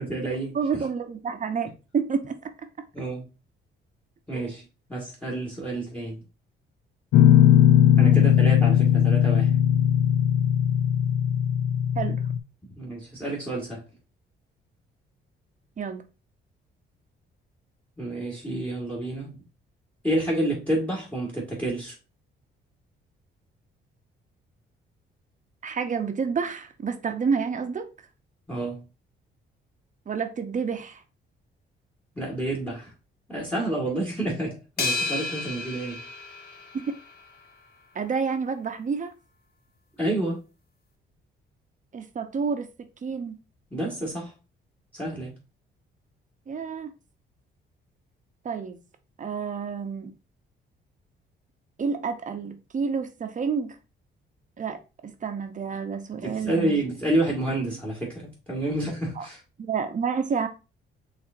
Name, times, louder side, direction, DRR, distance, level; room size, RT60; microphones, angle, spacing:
voice 1, 0.0-0.6 2.9-3.3 4.3-4.6 4.9-6.2 8.0-9.5 12.8-13.8 18.0-19.4 20.0-21.9 28.5-28.8 32.2-32.9 33.3-36.0 40.0-40.4 43.7-44.3 44.9-45.3 56.2-59.4, right 1 dB, 5° left, 1.7 m, -29 dB
voice 2, 0.5-2.4 4.3-4.5 8.0-8.3 11.9-12.2 15.8-16.0 25.6-27.9 30.1-31.0 36.7-37.0 37.9-39.1 41.9-42.7 43.0-43.4 46.5-46.9 48.4-48.8 49.2-50.1 51.8-53.8 54.6-56.8 59.2-59.3 59.6-60.5, right 5 dB, 40° right, 0.8 m, -29 dB
Guitar, 7.1-12.4, left 10 dB, 85° left, 0.5 m, -19 dB
sound 1, 34.8-37.3, left 3 dB, 50° left, 1.1 m, -32 dB
5.8 x 3.3 x 2.6 m
cardioid pair, 90°, 20 cm